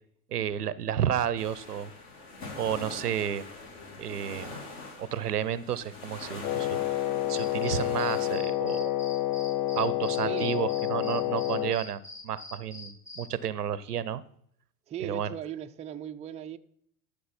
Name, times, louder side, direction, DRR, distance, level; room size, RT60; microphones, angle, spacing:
voice 1, 0.3-1.9 2.6-3.4 4.0-4.5 5.0-6.8 7.3-8.9 9.8-14.2 15.0-15.3, right 9 dB, 90° right, 18 dB, 0.7 m, -31 dB
sound 1, 1.4-8.4, left 3 dB, 50° left, 3.7 m, -43 dB
Wind instrument woodwind instrument, 6.4-11.8, left 14 dB, 70° left, 0.7 m, -29 dB
sound 2, 7.3-13.3, left 2 dB, 35° left, 4.1 m, -45 dB
voice 2, 10.2-10.5 14.9-16.6, right 10 dB, 15° right, 7 dB, 0.4 m, -38 dB
13.5 x 6.6 x 4.3 m, 0.66 s
hypercardioid pair, 85°, 45 cm